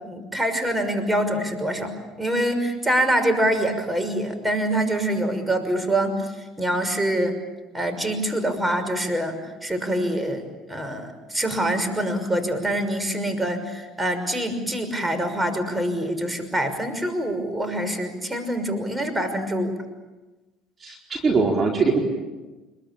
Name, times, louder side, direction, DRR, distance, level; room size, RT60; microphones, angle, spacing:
voice 1, 0.0-1.9 2.2-6.3 6.6-7.3 7.7-9.3 9.6-19.7, right 1 dB, 10° right, 8 dB, 6.0 m, -25 dB
voice 2, 20.8-22.0, right 4 dB, 35° right, 1 dB, 4.4 m, -21 dB
26.0 x 23.0 x 8.8 m, 1.1 s
supercardioid pair, 85°, 0 cm